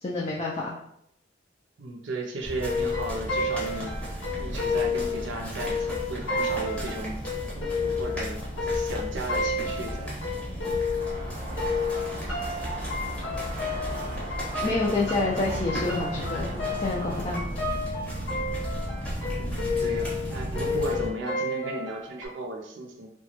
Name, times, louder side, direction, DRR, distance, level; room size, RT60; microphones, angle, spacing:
voice 1, 0.0-0.8 14.6-17.5, left 2 dB, 30° left, -4 dB, 0.3 m, -28 dB
voice 2, 1.8-3.9 4.3-7.2 7.5-10.2 19.4-23.1, right 2 dB, 80° right, 2 dB, 0.5 m, -35 dB
sound 1, 2.4-21.1, equal, 5° left, 0.7 m, -35 dB
sound 2, 2.6-11.3 11.6-22.3, left 3 dB, 75° left, 0.9 m, -31 dB
sound 3, 11.0-17.5, right 1 dB, 30° right, 0.5 m, -41 dB
2.9 x 2.2 x 2.9 m, 0.74 s
head